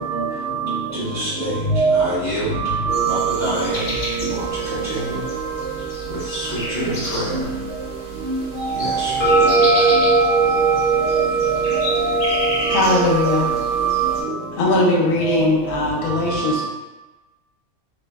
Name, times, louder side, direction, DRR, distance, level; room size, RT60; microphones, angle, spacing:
voice 1, 0.9-2.6 3.0-5.2 6.1-7.5 8.7-9.9, right 1 dB, 20° left, 0.5 m, -28 dB
voice 2, 2.6-3.2 7.3-7.4 8.3-10.1 10.5-10.8 12.0-12.4 13.7-14.1, right 2 dB, 90° right, 1.4 m, -22 dB
sound 1, 2.9-14.2, right 4 dB, 55° left, 1.0 m, -22 dB
voice 3, 12.7-13.5 14.5-16.7, left 2 dB, 85° left, 1.1 m, -19 dB
3.1 x 2.0 x 2.3 m
omnidirectional pair, 1.6 m